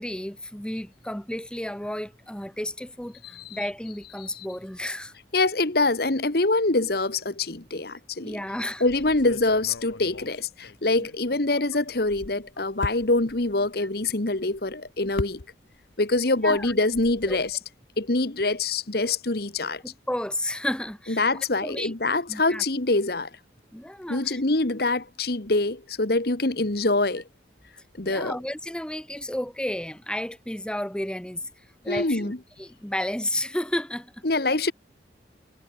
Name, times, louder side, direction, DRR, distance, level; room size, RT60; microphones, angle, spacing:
voice 1, 0.0-5.1 7.9-8.8 11.0-11.1 13.8-13.9 16.4-16.7 17.3-17.4 19.8-21.2 21.6-21.9 22.3-22.6 23.7-24.4 28.0-32.3 32.6-34.2, left 1 dB, 5° left, 0.9 m, -32 dB
voice 2, 5.3-8.4 8.8-15.4 16.0-17.6 18.0-19.8 21.1-23.3 24.1-27.2 28.0-28.3 31.9-32.4 34.2-34.7, left 2 dB, 55° left, 1.5 m, -25 dB
sound 1, 8.8-11.5 11.9-16.0 16.2-17.5, left 2 dB, 85° left, 1.0 m, -40 dB
head